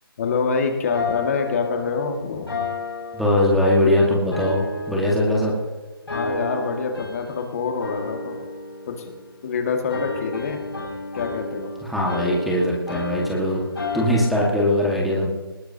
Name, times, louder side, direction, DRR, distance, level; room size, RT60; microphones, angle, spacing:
voice 1, 0.2-2.5 6.1-8.5 8.9-9.1 9.4-10.6 11.1-11.7, left 5 dB, 40° left, 3 dB, 2.1 m, -26 dB
sound 1, 0.9-3.9 4.3-5.7 6.1-7.5 7.8-9.5 9.9-14.6, left 3 dB, 85° left, 6.6 m, -32 dB
voice 2, 3.1-5.6 11.8-13.6 13.9-15.3, left 1 dB, ahead, -4 dB, 1.8 m, -21 dB
20.5 x 19.5 x 2.9 m, 1.2 s
figure-of-eight pair, 155°, 13 cm